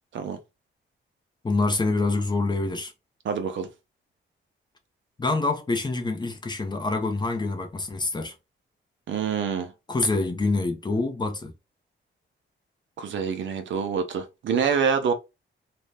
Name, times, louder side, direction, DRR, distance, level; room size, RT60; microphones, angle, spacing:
voice 1, 1.4-2.9 5.2-8.3 9.9-11.5, left 3 dB, 20° left, 0.5 m, -26 dB
voice 2, 3.2-3.7 9.1-9.7 13.0-15.1, right 6 dB, 70° right, 0.6 m, -26 dB
2.6 x 2.1 x 3.2 m
wide cardioid pair, 135°, 20 cm